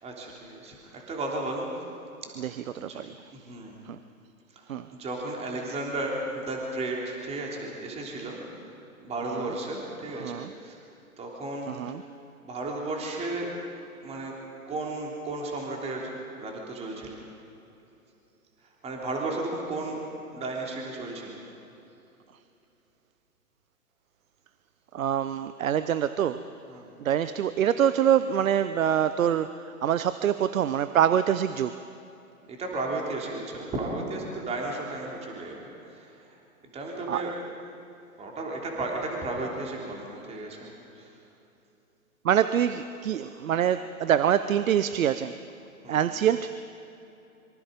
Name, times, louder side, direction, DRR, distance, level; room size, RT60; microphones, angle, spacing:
voice 1, 0.0-1.7 2.2-3.0 3.3-3.8 4.5-8.7 9.0-10.8 11.2-11.7 12.4-13.5 14.0-14.3 14.7-17.3 18.6-20.0 20.3-21.4 26.7-26.9 32.5-36.3 36.7-37.3 38.2-41.2 45.8-46.0, right 2 dB, 15° right, -1 dB, 3.3 m, -34 dB
voice 2, 2.4-3.2 3.8-4.0 4.7-4.9 9.3-9.5 10.1-10.5 11.7-12.0 24.9-26.4 27.0-31.8 37.1-37.3 42.2-45.4 45.9-46.6, right 9 dB, 65° right, 13 dB, 0.9 m, -25 dB
26.0 x 24.0 x 5.3 m, 2.9 s
hypercardioid pair, 140°, 44 cm